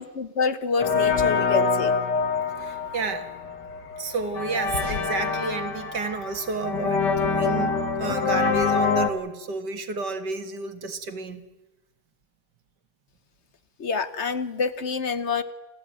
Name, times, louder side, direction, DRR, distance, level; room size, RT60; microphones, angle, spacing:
voice 1, 0.0-2.0 13.8-15.4, left 5 dB, 45° left, 12 dB, 1.3 m, -27 dB
sound 1, 0.8-9.1, left 5 dB, 85° left, 2.4 m, -25 dB
voice 2, 2.6-3.3 4.0-11.4, right 4 dB, 80° right, 8 dB, 2.4 m, -31 dB
28.5 x 15.5 x 9.2 m, 1.0 s
omnidirectional pair, 1.8 m